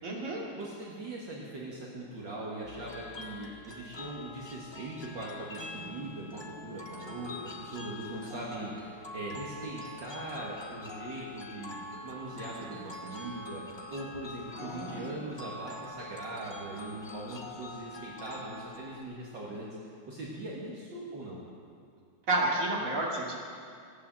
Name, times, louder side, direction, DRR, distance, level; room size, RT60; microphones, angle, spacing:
voice 1, 0.0-0.4 12.4-12.6 14.5-15.1 22.3-23.3, right 2 dB, 40° right, -3 dB, 2.7 m, -31 dB
voice 2, 0.5-19.7 20.1-21.4, right 1 dB, 60° right, -5 dB, 2.3 m, -41 dB
sound 1, 2.6-19.0, left 1 dB, 30° left, 0.5 m, -45 dB
16.0 x 8.7 x 7.6 m, 2.3 s
omnidirectional pair, 2.3 m